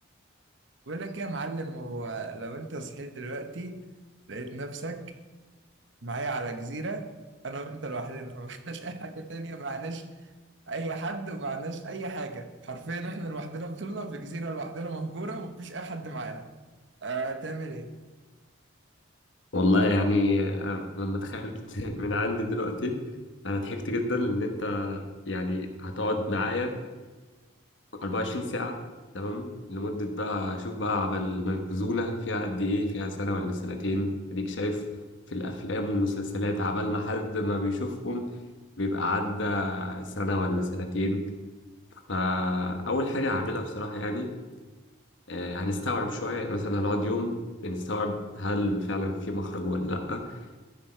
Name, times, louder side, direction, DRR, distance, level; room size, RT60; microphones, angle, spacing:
voice 1, 0.9-3.8 4.3-5.1 6.0-7.1 7.4-10.0 10.7-16.5 17.0-17.9, right 3 dB, 65° right, 8 dB, 1.0 m, -35 dB
voice 2, 19.5-23.0 23.4-26.7 28.0-28.8 29.1-34.8 35.3-38.3 38.8-41.2 42.1-44.3 45.3-50.4, left 1 dB, 65° left, 4 dB, 1.2 m, -29 dB
13.5 x 6.1 x 4.4 m, 1.3 s
head